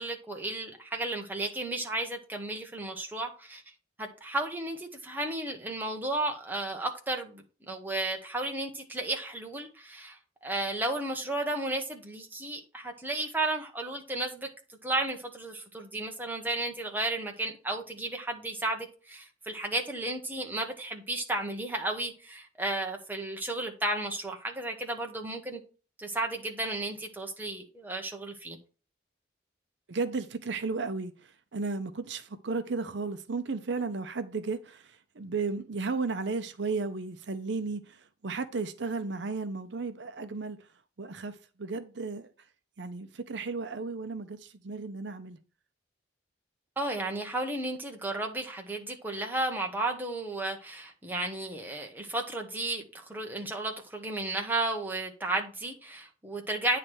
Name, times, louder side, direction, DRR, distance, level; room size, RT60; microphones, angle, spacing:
voice 1, 0.0-3.6 4.0-25.6 26.0-28.6 46.8-56.8, right 2 dB, 10° right, 1.1 m, -33 dB
voice 2, 29.9-40.7 41.0-42.3 42.8-45.4, right 4 dB, 70° right, 0.6 m, -34 dB
9.3 x 3.3 x 6.1 m
head